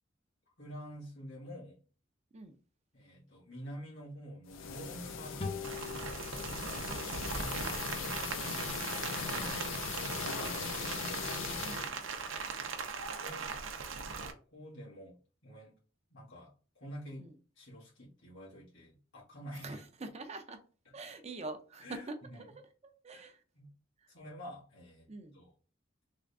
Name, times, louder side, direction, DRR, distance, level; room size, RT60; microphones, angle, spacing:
voice 1, 0.6-1.8 2.9-5.5 7.7-8.1 8.9-9.8 10.1-11.4 13.2-13.5 14.1-15.7 16.1-17.3 17.6-19.8 21.8-22.4 23.1-23.2 23.5-23.7 24.1-25.5, equal, 65° left, 1.8 m, -49 dB
sound 1, 4.5-11.9, left 5 dB, 85° left, 0.5 m, -39 dB
sound 2, 5.4-8.7, left 5 dB, 30° left, 0.6 m, -46 dB
Rain, 5.6-14.3, right 5 dB, 90° right, 0.6 m, -40 dB
voice 2, 6.5-7.9 11.6-12.0 17.2-17.3 19.6-20.6 20.9-23.4 25.1-25.4, right 3 dB, 35° right, 0.6 m, -46 dB
3.6 x 2.5 x 3.5 m
head